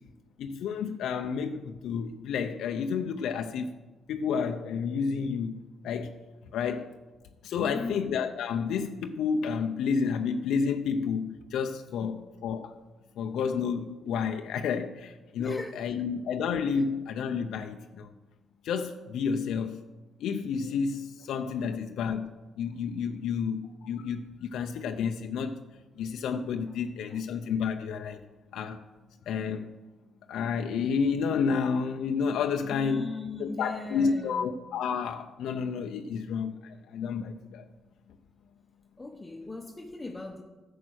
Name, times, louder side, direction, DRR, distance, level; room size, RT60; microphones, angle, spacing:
voice 1, 0.4-3.7 4.1-5.6 5.8-6.2 6.5-6.9 7.4-12.8 13.2-18.1 18.6-19.8 20.2-25.7 26.0-28.2 28.5-28.8 29.3-29.7 30.3-33.1 33.4-37.6, left 6 dB, 80° left, 0.6 m, -30 dB
voice 2, 7.6-8.0 12.0-12.2 15.4-15.9 21.6-21.7 26.7-26.8 27.1-27.2 32.7-34.5 39.0-40.4, left 3 dB, 15° left, 1.0 m, -39 dB
11.0 x 7.4 x 6.3 m
cardioid pair, 90°, 0 cm